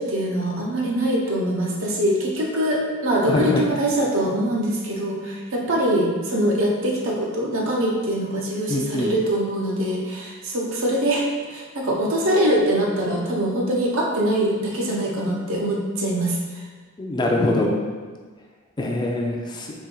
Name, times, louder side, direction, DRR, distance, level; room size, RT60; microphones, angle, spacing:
voice 1, 0.0-16.6, right 1 dB, 65° right, -2 dB, 0.8 m, -23 dB
voice 2, 3.3-3.7 8.7-9.1 17.0-17.8 18.8-19.7, left 1 dB, 20° left, 0 dB, 0.4 m, -23 dB
4.3 x 3.0 x 3.8 m, 1.4 s
head